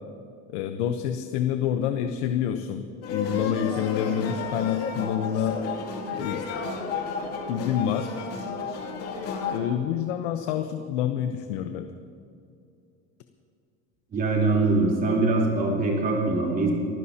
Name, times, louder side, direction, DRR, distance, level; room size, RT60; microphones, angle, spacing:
voice 1, 0.5-5.6 6.1-6.4 7.5-8.1 9.5-11.9, left 9 dB, 75° left, 7 dB, 0.9 m, -27 dB
sound 1, 3.0-9.6, left 5 dB, 45° left, 2.7 m, -32 dB
voice 2, 14.1-16.7, right 3 dB, 25° right, -3 dB, 3.6 m, -23 dB
25.0 x 15.0 x 2.9 m, 2.4 s
cardioid pair, 150°, 33 cm